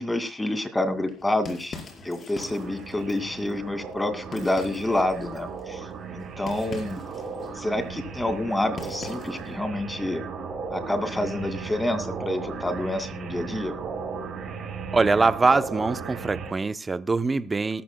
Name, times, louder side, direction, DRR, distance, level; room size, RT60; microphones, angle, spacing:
voice 1, 0.0-1.7 2.0-5.8 6.1-7.0 7.6-10.2 10.7-13.7, left 1 dB, 10° left, 2.4 m, -28 dB
sound 1, 1.0-9.6, left 4 dB, 40° left, 4.8 m, -44 dB
sound 2, 2.4-16.5, right 5 dB, 45° right, 5.0 m, -36 dB
voice 2, 14.9-17.8, right 3 dB, 20° right, 0.7 m, -23 dB
20.0 x 13.0 x 2.3 m
cardioid pair, 120°, 0 cm